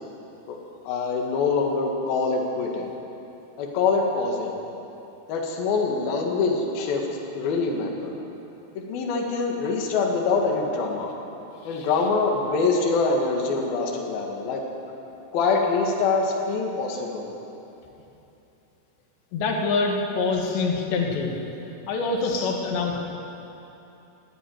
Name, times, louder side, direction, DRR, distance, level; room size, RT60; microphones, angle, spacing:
voice 1, 0.9-2.9 3.6-4.6 5.3-8.1 8.8-11.1 11.7-14.6 15.3-17.3 22.3-22.5, left 4 dB, 65° left, 0 dB, 3.6 m, -24 dB
voice 2, 19.3-21.4 21.9-23.0, left 4 dB, 85° left, 1 dB, 4.0 m, -25 dB
19.0 x 15.0 x 9.4 m, 2.9 s
omnidirectional pair, 4.9 m